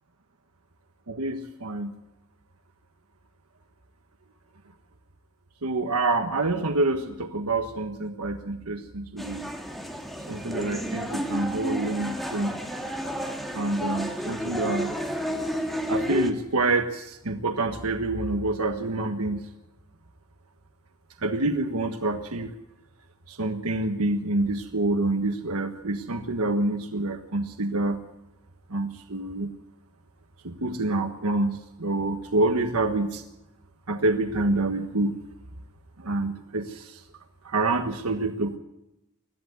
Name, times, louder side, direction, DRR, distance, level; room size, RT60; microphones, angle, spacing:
voice 1, 1.1-1.9 5.6-9.5 10.3-12.5 13.5-14.9 15.9-19.4 21.2-22.5 23.3-28.0 28.7-29.5 30.4-33.2 33.9-35.1 36.0-37.0 37.4-38.6, right 2 dB, 80° right, 5 dB, 1.4 m, -27 dB
sound 1, 9.2-16.3, equal, ahead, 2.0 m, -31 dB
22.0 x 14.0 x 9.5 m, 0.90 s
head